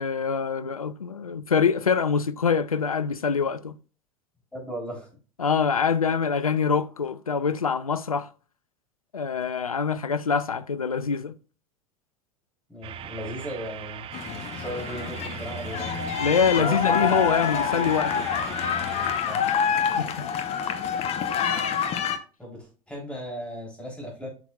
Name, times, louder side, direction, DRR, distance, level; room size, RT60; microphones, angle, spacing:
voice 1, 0.0-3.8 5.4-8.3 9.1-11.4 16.2-18.3 20.0-20.3, left 6 dB, 85° left, 0.4 m, -25 dB
voice 2, 4.5-5.1 12.7-16.1 16.6-17.2 19.2-19.5 22.4-24.3, equal, 5° left, 3.4 m, -37 dB
sound 1, 12.8-19.2, right 9 dB, 30° right, 0.6 m, -39 dB
sound 2, 14.1-22.2, left 7 dB, 35° left, 0.8 m, -27 dB
8.0 x 6.0 x 2.3 m
figure-of-eight pair, 75°, 18 cm